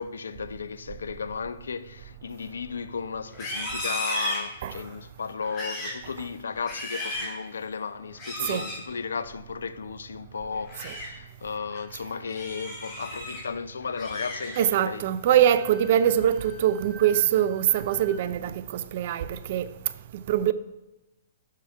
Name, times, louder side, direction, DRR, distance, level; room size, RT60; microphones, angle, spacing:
voice 1, 0.0-15.1, left 5 dB, 75° left, 0.4 m, -35 dB
Livestock farm animals working animals, 3.3-4.9 5.4-6.0 6.5-7.4 8.1-8.8 10.5-11.1 11.5-11.8 12.3-13.4 13.8-14.8 15.2-15.6 16.0-16.4, left 1 dB, 30° left, 3.1 m, -35 dB
voice 2, 14.6-19.7 20.1-20.5, right 10 dB, 50° right, 0.4 m, -23 dB
Wind instrument woodwind instrument, 15.4-18.2, right 2 dB, 15° right, 1.5 m, -48 dB
7.5 x 6.1 x 4.5 m
figure-of-eight pair, 120°, 0 cm